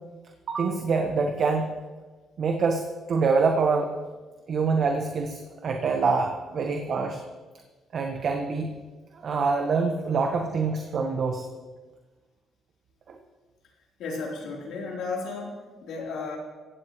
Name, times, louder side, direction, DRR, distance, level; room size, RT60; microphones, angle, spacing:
voice 1, 0.5-1.6 2.4-4.0 4.5-7.2 7.9-8.7 9.2-11.5 13.1-13.2, right 4 dB, 55° right, 3 dB, 1.3 m, -25 dB
voice 2, 14.0-16.4, left 3 dB, 80° left, -2 dB, 3.8 m, -34 dB
17.0 x 16.0 x 3.2 m, 1.3 s
cardioid pair, 90°, 0 cm